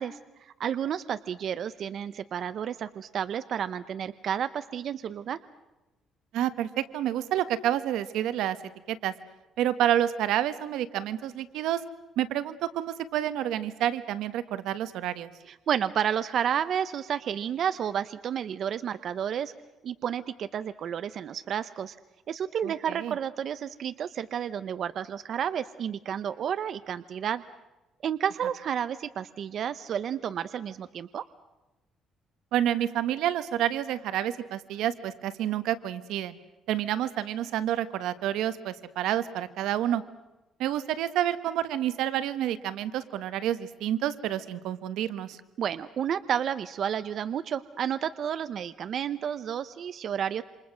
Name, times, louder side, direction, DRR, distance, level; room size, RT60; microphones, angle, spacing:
voice 1, 0.0-5.4 15.5-19.5 19.8-22.0 22.3-27.4 28.0-31.2 45.6-50.4, right 8 dB, 50° right, 13 dB, 0.8 m, -31 dB
voice 2, 6.3-8.6 8.9-9.1 9.6-11.8 12.2-15.3 22.6-23.1 32.5-36.3 36.7-40.0 40.6-45.4, right 11 dB, 85° right, 13 dB, 1.4 m, -29 dB
28.0 x 26.5 x 6.3 m, 1.0 s
cardioid pair, 160°, 0 cm